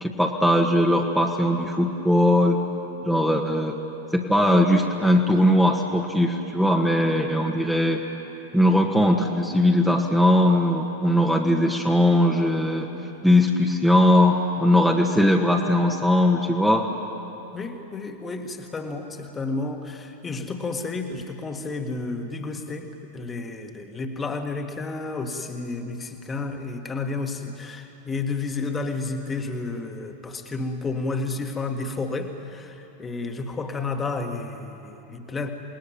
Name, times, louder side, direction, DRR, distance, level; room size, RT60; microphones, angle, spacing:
voice 1, 0.0-2.6 3.0-3.8 4.1-8.0 8.5-12.9 13.2-16.9, left 1 dB, ahead, 1 dB, 1.8 m, -20 dB
voice 2, 17.5-35.5, left 3 dB, 15° left, 5 dB, 2.0 m, -31 dB
28.5 x 20.0 x 9.0 m, 2.9 s
figure-of-eight pair, 90°, 0 cm